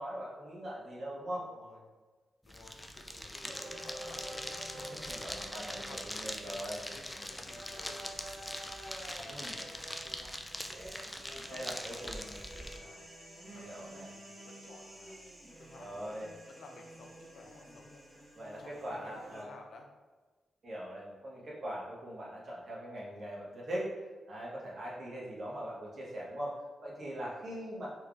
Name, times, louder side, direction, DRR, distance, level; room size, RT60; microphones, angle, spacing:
voice 1, 0.0-1.5 4.9-5.8 6.0-6.8 9.2-9.6 11.5-12.4 13.6-14.1 15.8-16.3 18.3-19.6 20.6-23.9 24.3-27.9, equal, 55° right, -5 dB, 1.2 m, -41 dB
voice 2, 1.3-1.8 2.4-4.5 5.0-8.5 9.2-10.5 11.2-13.1 13.5-15.3 15.6-18.0 18.6-19.9 24.7-24.8 27.3-27.4, left 3 dB, 75° left, 2 dB, 0.6 m, -55 dB
sound 1, 2.5-12.8, left 1 dB, 10° left, 0.3 m, -42 dB
sound 2, 3.4-19.4, right 1 dB, 15° right, 1.1 m, -50 dB
4.3 x 3.1 x 2.4 m, 1.3 s
wide cardioid pair, 120°, 0 cm